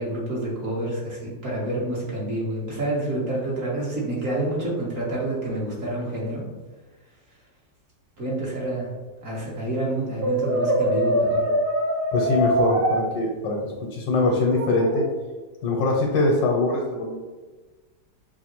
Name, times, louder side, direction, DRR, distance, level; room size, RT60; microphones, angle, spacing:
voice 1, 0.0-6.4 8.2-8.9 9.2-11.4, right 1 dB, 50° right, -5 dB, 1.2 m, -28 dB
Brass instrument, 10.2-13.0 14.5-15.1, right 1 dB, 70° right, 1.7 m, -23 dB
voice 2, 12.1-15.1 15.6-17.2, left 2 dB, 90° left, -1 dB, 1.3 m, -23 dB
5.3 x 2.5 x 2.9 m, 1.3 s
omnidirectional pair, 1.9 m